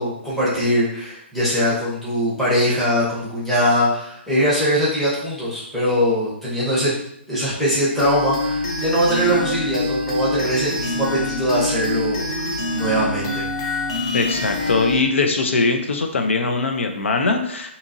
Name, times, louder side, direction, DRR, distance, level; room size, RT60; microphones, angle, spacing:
voice 1, 0.0-6.9 7.3-13.7, equal, ahead, -9 dB, 0.7 m, -21 dB
sound 1, 8.0-15.0, left 2 dB, 30° left, 0.4 m, -25 dB
voice 2, 14.1-17.8, left 3 dB, 80° left, 5 dB, 0.5 m, -21 dB
3.8 x 2.8 x 2.6 m, 0.75 s
hypercardioid pair, 175°, 7 cm